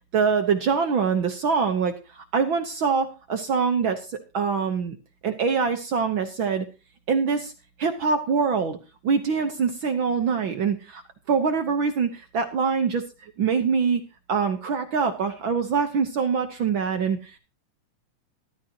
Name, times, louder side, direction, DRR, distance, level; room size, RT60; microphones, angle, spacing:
voice 1, 0.1-5.0 5.2-6.6 7.1-7.5 7.8-8.8 9.0-11.0 11.3-14.0 14.3-17.4, right 5 dB, 70° right, 6 dB, 1.1 m, -24 dB
13.5 x 13.5 x 2.9 m, 0.31 s
omnidirectional pair, 3.7 m